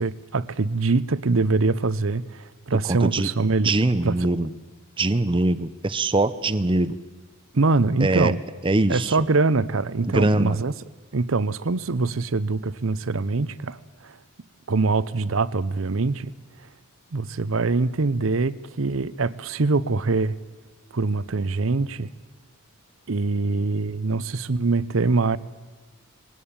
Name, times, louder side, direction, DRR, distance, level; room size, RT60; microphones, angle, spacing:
voice 1, 0.0-3.7 4.0-4.3 7.5-8.4 8.9-10.7 11.1-13.8 14.0-14.2 14.7-16.3 17.1-20.4 20.9-22.1 23.1-25.4, right 3 dB, 70° right, 18 dB, 0.7 m, -23 dB
voice 2, 2.9-3.3 3.6-4.5 5.0-7.0 8.0-8.3 8.6-9.2 10.1-10.6, right 2 dB, 25° right, 13 dB, 0.6 m, -22 dB
20.0 x 18.5 x 8.8 m, 1.3 s
head